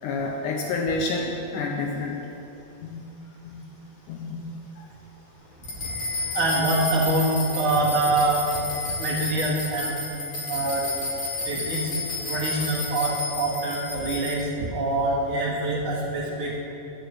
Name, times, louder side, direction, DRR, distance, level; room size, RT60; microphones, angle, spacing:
voice 1, 0.0-2.3 2.8-3.1 3.4-3.6 4.1-4.9 6.2-6.3, left 3 dB, 80° left, 0 dB, 1.8 m, -29 dB
sound 1, 5.6-14.3, left 2 dB, 55° left, 1.5 m, -31 dB
voice 2, 6.3-7.3 7.5-8.5 9.0-9.9 10.5-10.8 11.5-11.9 12.3-16.6, right 2 dB, 55° right, -4 dB, 1.6 m, -25 dB
11.5 x 4.5 x 8.0 m, 2.9 s
omnidirectional pair, 4.4 m